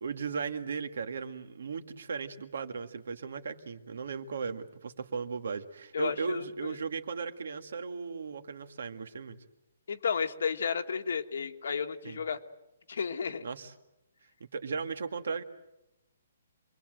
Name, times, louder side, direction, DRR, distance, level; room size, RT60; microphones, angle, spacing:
voice 1, 0.0-9.4 12.0-12.2 13.4-13.7 14.5-15.4, right 5 dB, 70° right, 8 dB, 2.0 m, -36 dB
voice 2, 5.9-6.8 9.9-12.4 12.9-13.4, left 6 dB, 70° left, 7 dB, 1.7 m, -32 dB
27.0 x 21.5 x 7.8 m, 0.93 s
hypercardioid pair, 170°, 0 cm